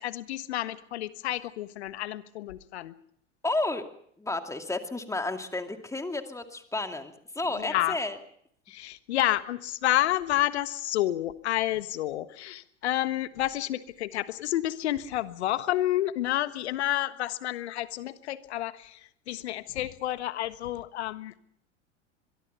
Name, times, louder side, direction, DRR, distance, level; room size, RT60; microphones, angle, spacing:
voice 1, 0.0-2.9 7.5-8.0 8.7-21.4, left 14 dB, 65° left, 14 dB, 1.5 m, -30 dB
voice 2, 3.4-3.8 4.2-8.2, left 2 dB, 10° left, 6 dB, 2.4 m, -32 dB
23.5 x 23.0 x 5.6 m, 0.66 s
figure-of-eight pair, 85°, 36 cm